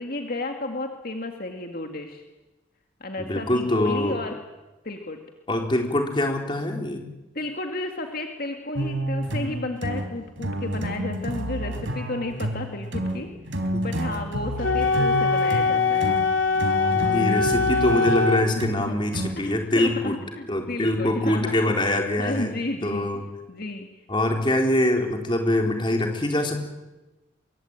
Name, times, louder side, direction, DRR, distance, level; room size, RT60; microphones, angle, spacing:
voice 1, 0.0-2.2 3.0-4.4 4.8-5.2 7.3-13.3 13.5-16.2 18.8-18.9 19.4-23.2 23.5-23.9, left 2 dB, 50° left, 4 dB, 2.2 m, -33 dB
voice 2, 3.2-4.2 5.5-7.0 13.7-13.9 16.9-20.2 20.5-22.6 22.8-23.2 24.1-26.7, left 1 dB, 25° left, 3 dB, 4.0 m, -24 dB
sound 1, 8.8-19.6, right 1 dB, 80° right, 3.9 m, -30 dB
Wind instrument woodwind instrument, 14.6-18.5, left 4 dB, 75° left, 2.8 m, -22 dB
24.5 x 23.5 x 9.0 m, 1.1 s
head